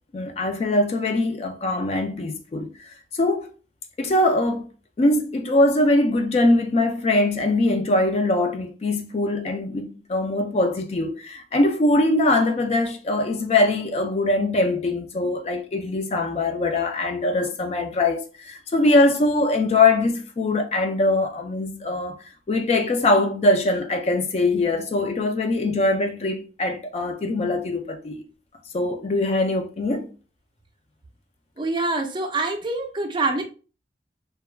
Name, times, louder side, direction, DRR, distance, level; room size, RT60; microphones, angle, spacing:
voice 1, 0.1-3.5 4.0-4.7 5.0-22.2 22.5-28.2 28.7-30.1, left 2 dB, 35° left, 0.3 m, -22 dB
voice 2, 31.6-33.4, right 3 dB, 25° right, 0.4 m, -25 dB
2.3 x 2.2 x 3.2 m
head